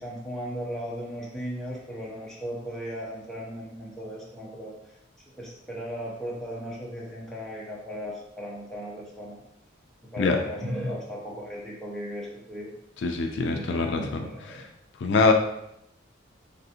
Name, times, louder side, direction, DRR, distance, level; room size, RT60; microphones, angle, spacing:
voice 1, 0.0-4.7 5.3-9.4 10.1-12.7 13.5-14.7, equal, ahead, -5 dB, 0.6 m, -36 dB
voice 2, 13.0-14.2 15.0-15.3, left 4 dB, 60° left, 4 dB, 0.3 m, -23 dB
3.3 x 2.5 x 2.7 m, 0.79 s
head